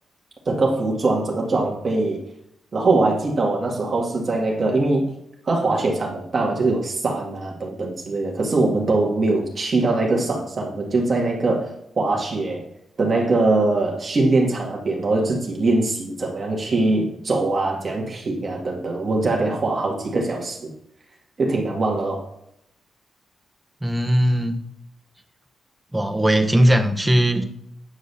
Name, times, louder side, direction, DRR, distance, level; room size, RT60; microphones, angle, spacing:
voice 1, 0.5-2.3 2.7-5.1 5.5-12.7 13.0-20.7 21.4-22.3, right 2 dB, 35° right, -2 dB, 1.9 m, -22 dB
voice 2, 23.8-24.6 25.9-27.4, equal, 5° right, 5 dB, 0.9 m, -18 dB
9.2 x 3.9 x 6.7 m, 0.77 s
wide cardioid pair, 135°, 0 cm